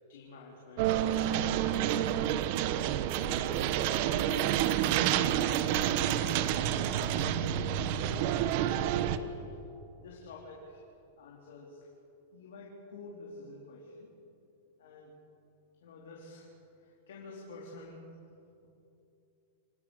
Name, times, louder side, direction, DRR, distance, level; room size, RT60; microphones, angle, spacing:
voice 1, 0.1-2.0 3.1-4.6 5.5-6.6 7.1-7.8 8.3-9.6 10.0-10.8 11.2-11.9 12.3-14.1 14.8-15.2 15.8-16.5 16.8-18.0, left 3 dB, 85° left, -3 dB, 4.1 m, -49 dB
sound 1, 0.8-9.2, right 11 dB, 50° right, 1.1 m, -29 dB
28.5 x 15.5 x 6.6 m, 2.8 s
supercardioid pair, 140°, 0 cm